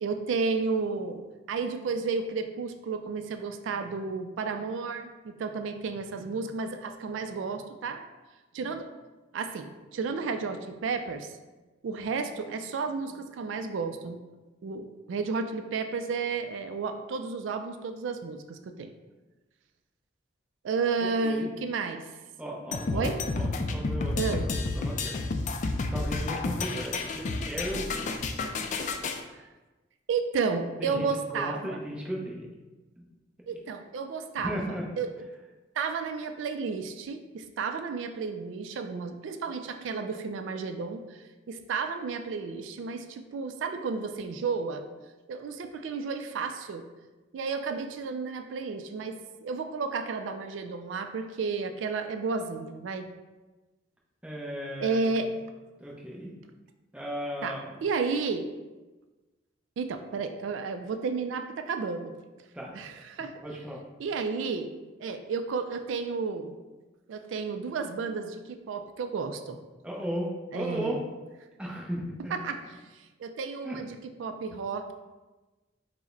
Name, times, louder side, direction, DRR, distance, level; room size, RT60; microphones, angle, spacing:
voice 1, 0.0-1.2 1.5-8.0 8.5-8.9 9.3-11.3 11.8-14.2 14.6-18.9 20.6-22.1 22.9-23.2 24.2-24.5 29.3-29.5 30.1-31.8 33.5-34.6 35.0-35.1 35.8-44.9 45.3-46.9 47.3-53.1 54.8-55.3 57.4-57.6 57.8-58.5 59.8-62.2 62.7-63.3 64.0-64.7 65.0-66.6 67.1-69.6 70.5-71.0 72.4-72.6 72.9-74.9, right 4 dB, 85° right, 7 dB, 0.3 m, -32 dB
voice 2, 21.0-21.5 22.4-23.1 23.3-25.2 25.9-28.1 30.8-32.5 33.0-33.1 33.5-33.6 34.4-34.9 54.2-55.1 55.8-56.4 56.9-57.8 62.5-62.8 63.4-63.8 69.8-71.0 71.6-72.3 73.6-73.8, equal, 5° right, -3 dB, 0.6 m, -36 dB
sound 1, 22.7-29.2, left 3 dB, 40° left, 0.3 m, -30 dB
4.9 x 2.1 x 3.8 m, 1.2 s
head